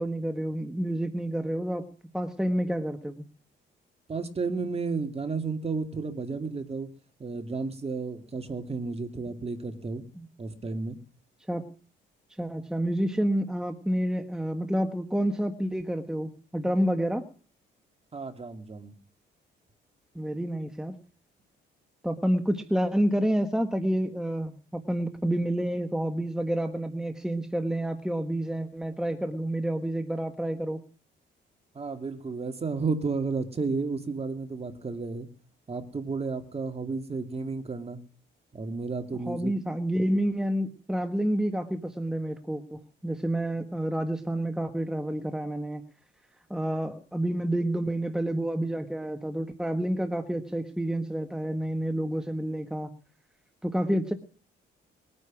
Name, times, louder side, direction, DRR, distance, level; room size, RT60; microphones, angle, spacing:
voice 1, 0.0-3.2 10.2-10.3 11.5-11.7 12.4-17.3 20.1-21.0 22.0-30.8 39.3-45.8 46.5-52.9 53.6-54.1, right 1 dB, 5° right, 7 dB, 1.4 m, -29 dB
voice 2, 4.1-6.9 7.2-10.0 10.4-11.0 18.1-18.9 31.7-35.3 35.7-38.0 38.5-39.5, right 4 dB, 30° right, 7 dB, 2.4 m, -32 dB
21.0 x 9.8 x 6.1 m, 0.40 s
cardioid pair, 90°, 20 cm